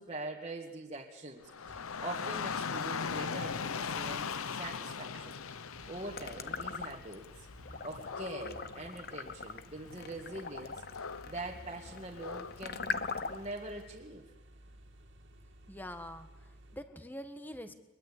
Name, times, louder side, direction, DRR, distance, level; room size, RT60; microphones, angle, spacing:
voice 1, 0.0-7.5 7.8-14.3, right 2 dB, 30° right, -3 dB, 2.0 m, -44 dB
Dog / Rain, 1.4-13.6, left 6 dB, 90° left, 0.8 m, -41 dB
sound 1, 1.6-3.3 3.8-3.9 4.3-4.7 5.0-16.8, equal, 60° right, 2.8 m, -57 dB
sound 2, 6.1-7.3 7.7-13.6, left 5 dB, 45° left, 1.0 m, -41 dB
voice 2, 15.6-17.7, equal, 10° left, 8 dB, 1.4 m, -45 dB
23.0 x 22.0 x 8.5 m, 1.1 s
head